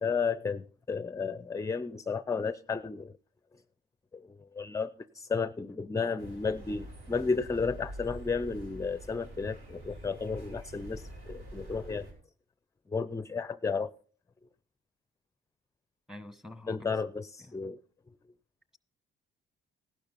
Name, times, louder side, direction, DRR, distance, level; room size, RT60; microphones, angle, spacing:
voice 1, 0.0-3.1 4.1-12.1 12.9-13.9 16.7-17.8, left 5 dB, 15° left, 0.5 m, -33 dB
sound 1, 6.2-12.1, right 1 dB, 90° right, 5.5 m, -46 dB
voice 2, 16.1-16.9 17.4-17.6, left 1 dB, ahead, 1.2 m, -46 dB
15.5 x 12.0 x 4.1 m
cardioid pair, 90°, 20 cm